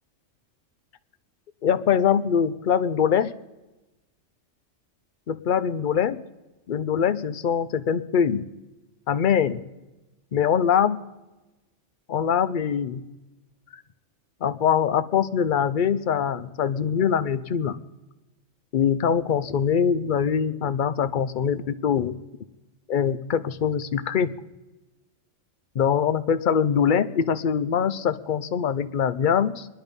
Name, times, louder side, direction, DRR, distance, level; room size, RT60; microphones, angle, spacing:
voice 1, 1.6-3.3 5.3-6.2 6.7-8.5 9.1-9.6 10.3-11.0 12.1-13.0 14.4-17.8 18.7-22.2 22.9-24.3 25.7-29.7, left 7 dB, 50° left, 13 dB, 0.6 m, -23 dB
24.5 x 10.0 x 5.3 m, 1.1 s
omnidirectional pair, 1.3 m